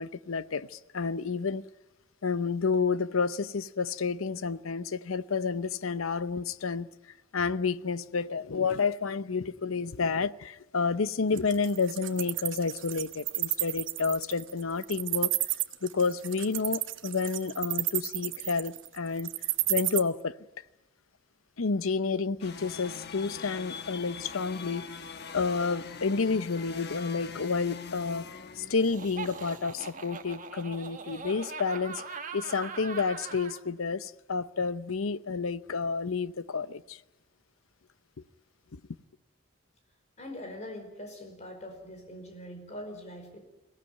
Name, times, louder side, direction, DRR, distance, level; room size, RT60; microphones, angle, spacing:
voice 1, 0.0-1.6 2.2-6.9 7.3-15.3 15.8-19.3 19.7-20.4 21.6-25.0 25.3-28.3 28.6-37.0 38.7-38.8, left 4 dB, 80° left, 0.8 m, -30 dB
Wild animals, 11.4-20.0, right 17 dB, 65° right, 1.0 m, -31 dB
sound 1, 22.4-29.4, left 5 dB, 50° left, 1.2 m, -42 dB
Laughter, 28.8-33.6, right 5 dB, 40° right, 1.4 m, -41 dB
voice 2, 40.2-43.4, left 1 dB, 35° left, 5.1 m, -43 dB
22.5 x 17.5 x 9.3 m
head